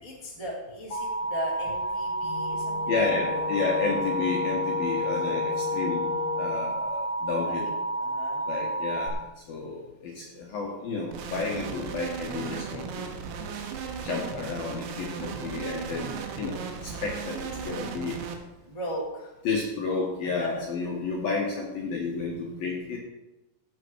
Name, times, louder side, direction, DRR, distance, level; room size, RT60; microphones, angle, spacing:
voice 1, 0.0-3.8 7.4-7.7 8.0-8.5 15.0-15.5 18.6-19.3 20.2-20.6, equal, 10° right, -4 dB, 1.6 m, -38 dB
Alarm, 0.9-9.1, right 2 dB, 20° left, 2.9 m, -30 dB
Wind instrument woodwind instrument, 2.2-6.7, left 12 dB, 80° left, 3.0 m, -34 dB
voice 2, 2.9-6.1 6.4-7.7 8.5-9.2 9.5-13.1 14.0-17.4 17.6-18.2 19.4-23.0, left 4 dB, 60° left, -2 dB, 2.6 m, -31 dB
sound 1, 11.1-18.4, right 6 dB, 85° right, 4.1 m, -36 dB
16.0 x 8.4 x 4.7 m, 1.0 s
omnidirectional pair, 6.0 m